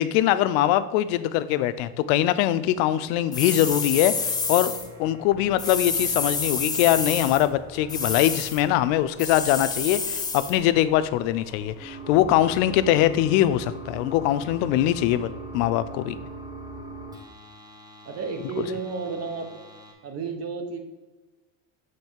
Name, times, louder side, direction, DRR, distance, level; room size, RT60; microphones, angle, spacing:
voice 1, 0.0-4.7 5.0-16.2, left 13 dB, 90° left, 14 dB, 0.5 m, -22 dB
sound 1, 3.3-4.9 5.6-7.4 7.9-8.6 9.2-10.6, left 4 dB, 10° left, 0.4 m, -28 dB
sound 2, 3.4-19.9, right 2 dB, 10° right, 1.3 m, -42 dB
voice 2, 18.0-19.6 20.0-20.8, right 4 dB, 40° right, 6 dB, 0.9 m, -32 dB
7.5 x 3.2 x 4.4 m, 1.2 s
cardioid pair, 150°, 39 cm